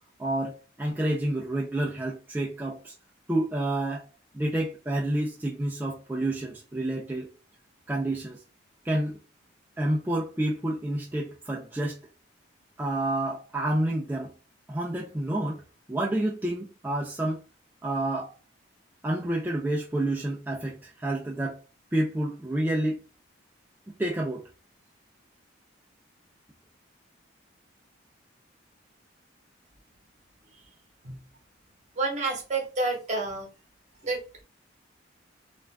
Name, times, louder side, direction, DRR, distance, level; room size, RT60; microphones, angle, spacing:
voice 1, 0.2-2.9 3.3-4.1 4.3-7.3 7.9-8.4 8.8-9.2 9.8-12.0 12.8-14.3 14.7-15.6 15.9-17.4 17.8-18.3 19.0-21.6 21.9-23.0 23.9-24.5, right 1 dB, 10° right, 0.3 m, -29 dB
voice 2, 31.9-33.5 34.0-34.4, right 3 dB, 35° right, 0.9 m, -29 dB
2.4 x 2.2 x 3.2 m
head